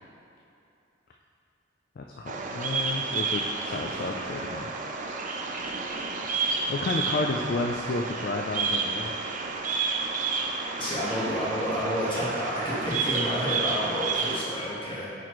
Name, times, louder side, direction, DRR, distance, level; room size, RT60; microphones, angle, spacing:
voice 1, 2.0-4.7 6.7-9.2, left 3 dB, 45° left, 1 dB, 0.3 m, -31 dB
Bird vocalization bird call bird song, 2.3-14.4, right 4 dB, 40° right, 0.4 m, -30 dB
voice 2, 10.8-15.1, equal, 25° left, -8 dB, 1.4 m, -30 dB
8.8 x 4.2 x 3.1 m, 2.6 s
head